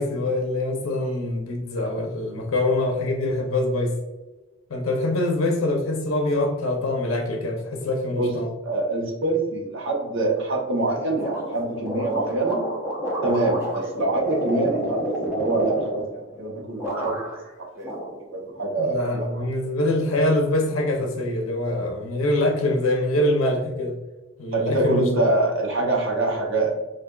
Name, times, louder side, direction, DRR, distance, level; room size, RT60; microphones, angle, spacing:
voice 1, 0.0-3.9 4.7-8.5 18.8-24.0 24.4-25.3, left 1 dB, 75° left, 2 dB, 0.6 m, -24 dB
voice 2, 8.6-12.6 13.2-17.1 17.7-17.9 18.3-19.4 24.5-26.7, right 2 dB, 65° right, -2 dB, 1.0 m, -25 dB
sound 1, 11.2-16.5 16.8-17.5 17.8-18.7, equal, 15° right, 0.7 m, -30 dB
4.9 x 2.5 x 2.3 m, 1.1 s
head